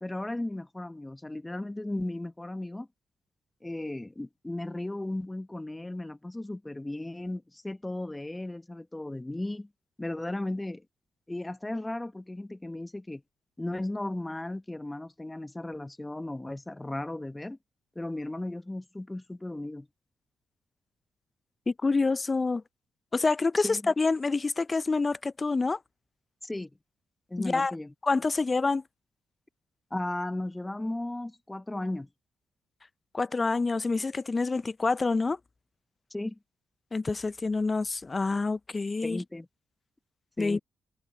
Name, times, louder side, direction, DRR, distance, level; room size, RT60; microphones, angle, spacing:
voice 1, 0.0-2.9 3.6-9.7 10.0-10.8 11.3-13.2 13.6-17.6 17.9-19.9 23.6-23.9 26.4-26.7 27.3-27.9 29.9-32.1 36.1-36.4 39.0-39.5 40.4-40.6, left 1 dB, 15° left, 1.3 m, -35 dB
voice 2, 21.7-22.6 23.1-25.8 27.4-27.7 28.0-28.8 33.1-35.4 36.9-39.2 40.4-40.6, left 3 dB, 35° left, 0.7 m, -27 dB
hypercardioid pair, 40°, 0 cm